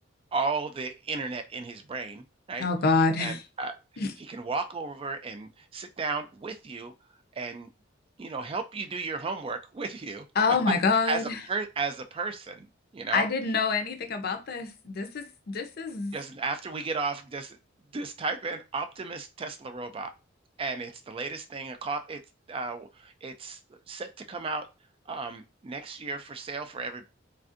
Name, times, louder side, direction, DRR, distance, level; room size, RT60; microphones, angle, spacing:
voice 1, 0.3-2.7 3.2-3.7 4.3-6.9 7.3-7.7 8.2-10.3 11.1-11.2 11.5-12.7 12.9-13.3 16.1-17.6 17.9-20.1 20.6-22.2 22.5-23.6 23.9-24.7 25.1-27.1, right 4 dB, 30° right, 0.3 m, -34 dB
voice 2, 2.6-3.4 4.0-4.1 10.4-11.4 13.1-16.1, left 4 dB, 50° left, 0.5 m, -26 dB
3.3 x 2.5 x 2.5 m
head